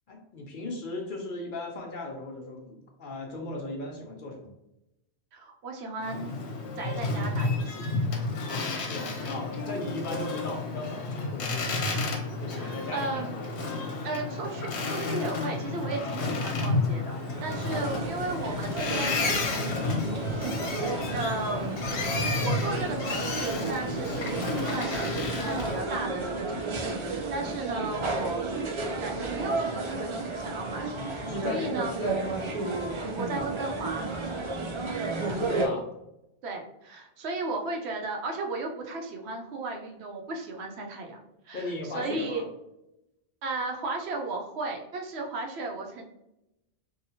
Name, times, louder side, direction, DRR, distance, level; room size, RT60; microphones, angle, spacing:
voice 1, 0.1-4.5 8.5-12.0 12.4-13.6 17.5-18.2 30.9-32.6 35.2-35.9 41.5-42.4, left 2 dB, 60° left, 1 dB, 0.6 m, -37 dB
voice 2, 5.3-6.3 6.8-7.9 12.5-13.3 14.0-20.2 21.1-28.7 29.0-31.9 33.1-34.1 36.4-41.2 41.4-42.5 43.4-46.0, right 3 dB, 75° right, 2 dB, 0.9 m, -35 dB
Boat Water vehicle, 6.0-25.8, left 3 dB, 85° left, 0.9 m, -31 dB
sound 1, 17.0-35.7, right 3 dB, 45° right, 0.4 m, -33 dB
2.8 x 2.3 x 2.7 m, 0.88 s
omnidirectional pair, 1.1 m